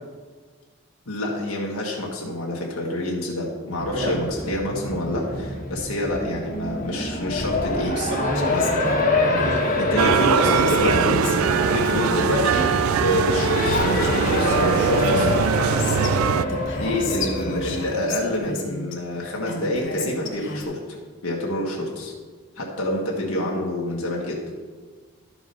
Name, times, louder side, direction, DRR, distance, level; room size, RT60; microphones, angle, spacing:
voice 1, 1.1-8.1 8.5-8.6 9.8-11.2 11.7-12.7 13.0-15.4 16.8-20.8 21.2-22.1 22.6-24.4, left 1 dB, 80° left, -2 dB, 1.6 m, -27 dB
Race car auto racing, 3.7-17.8, left 2 dB, 40° left, 1.5 m, -26 dB
voice 2, 7.9-10.8 15.5-16.2, equal, 55° right, -5 dB, 2.1 m, -31 dB
Female speech woman speaking, 8.3-9.6 10.4-12.7 13.3-13.4 13.6-16.1 16.5-18.9 19.5-20.6, left 3 dB, 55° left, 1.3 m, -33 dB
sound 1, 10.0-16.4, right 7 dB, 75° right, 0.3 m, -22 dB
12.5 x 4.9 x 5.4 m, 1.5 s
head